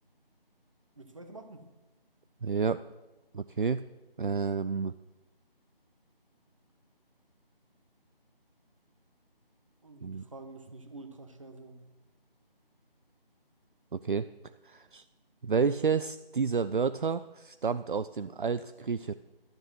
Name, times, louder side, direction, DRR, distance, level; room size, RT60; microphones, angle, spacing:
voice 1, 1.0-1.6 9.8-11.8, right 2 dB, 35° right, 7 dB, 1.2 m, -47 dB
voice 2, 2.4-2.8 3.3-3.8 4.2-4.9 10.0-10.2 13.9-14.3 14.6-15.0 15.4-19.1, right 5 dB, 60° right, 13 dB, 0.5 m, -30 dB
12.5 x 7.2 x 7.6 m, 1.1 s
figure-of-eight pair, 170°, 29 cm